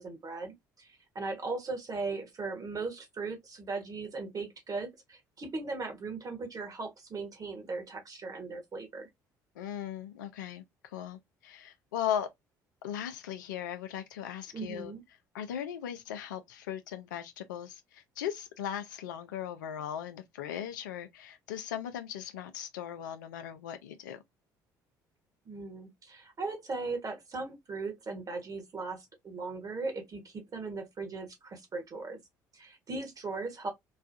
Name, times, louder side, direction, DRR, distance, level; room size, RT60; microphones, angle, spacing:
voice 1, 0.0-9.1 14.5-15.0 25.4-32.2 32.5-33.7, right 3 dB, 35° right, 1.3 m, -38 dB
voice 2, 9.6-10.6 10.9-12.3 12.8-14.9 15.3-24.2, left 10 dB, 80° left, 0.5 m, -38 dB
3.1 x 2.3 x 2.5 m
hypercardioid pair, 55°, 10 cm